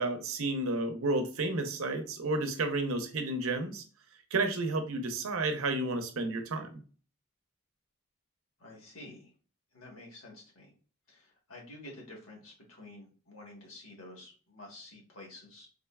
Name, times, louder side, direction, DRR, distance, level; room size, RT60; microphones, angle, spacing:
voice 1, 0.0-3.8 4.3-6.7, right 2 dB, 70° right, 6 dB, 0.6 m, -31 dB
voice 2, 8.6-9.3 9.7-10.7 11.1-15.7, left 1 dB, 70° left, -1 dB, 1.3 m, -50 dB
3.6 x 3.2 x 2.3 m, 0.38 s
head